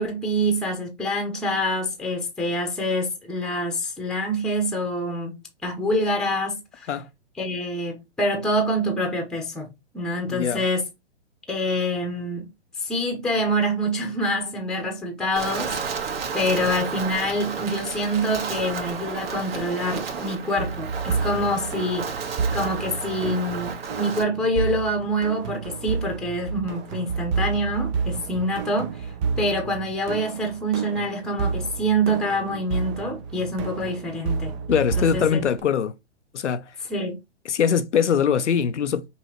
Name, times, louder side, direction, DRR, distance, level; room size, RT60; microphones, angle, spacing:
voice 1, 0.0-6.9 7.4-9.7 9.9-10.9 11.5-12.5 12.8-22.1 22.5-34.5 35.0-35.4 36.9-37.2, equal, ahead, 0.9 m, -26 dB
voice 2, 10.3-10.6 34.7-35.9 36.3-36.8 37.4-39.1, left 7 dB, 85° left, 0.7 m, -22 dB
Wind, 15.4-24.2, right 5 dB, 55° right, 1.5 m, -32 dB
sound 1, 20.6-35.6, right 5 dB, 25° right, 0.5 m, -30 dB
5.5 x 3.1 x 3.0 m
hypercardioid pair, 130°, 34 cm